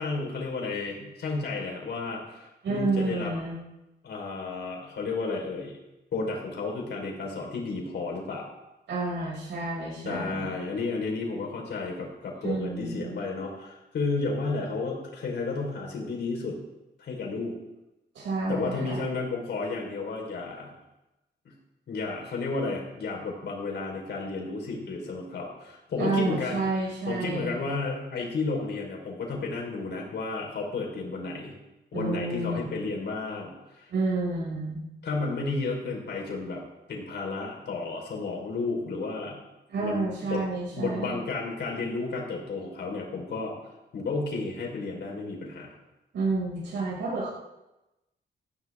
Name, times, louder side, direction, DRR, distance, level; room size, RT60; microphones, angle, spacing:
voice 1, 0.0-3.3 4.0-5.8 6.1-8.5 10.0-16.6 17.0-17.5 18.5-20.7 21.4-21.5 21.9-26.6 27.1-31.5 31.9-33.9 35.0-36.6 36.9-39.4 39.8-40.4 40.7-43.5 43.9-45.8, left 3 dB, 65° left, 0 dB, 4.7 m, -32 dB
voice 2, 2.6-3.6 8.9-10.4 12.4-13.2 18.1-19.0 26.0-27.6 31.9-32.7 33.9-34.8 39.7-41.2 46.1-47.3, right 3 dB, 80° right, -7 dB, 6.8 m, -30 dB
19.0 x 14.5 x 3.7 m, 0.98 s
wide cardioid pair, 140°, 19 cm